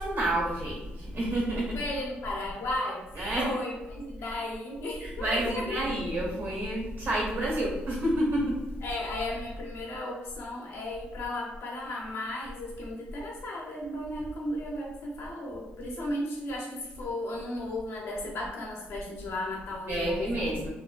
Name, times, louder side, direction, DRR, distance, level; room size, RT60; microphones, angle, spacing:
voice 1, 0.0-1.8 3.1-3.5 5.0-8.6 19.9-20.7, right 1 dB, 65° right, -4 dB, 1.3 m, -29 dB
voice 2, 1.7-3.1 3.4-5.8 8.8-20.4, left 1 dB, 70° left, -2 dB, 0.6 m, -35 dB
2.5 x 2.2 x 2.3 m, 0.97 s
supercardioid pair, 55°, 4 cm